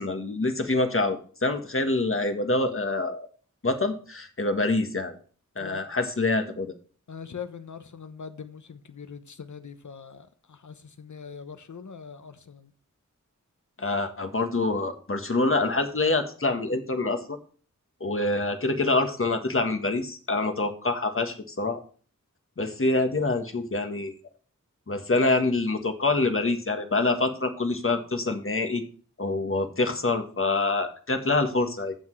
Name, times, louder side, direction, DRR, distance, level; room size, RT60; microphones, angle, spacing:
voice 1, 0.0-3.3 3.6-5.1 5.6-6.7 13.8-17.4 18.0-21.8 22.6-24.1 24.9-28.8 29.2-31.9, left 2 dB, 40° left, 1.4 m, -26 dB
voice 2, 7.1-12.7, left 6 dB, 65° left, 1.0 m, -42 dB
15.0 x 6.0 x 3.2 m
wide cardioid pair, 85°, 31 cm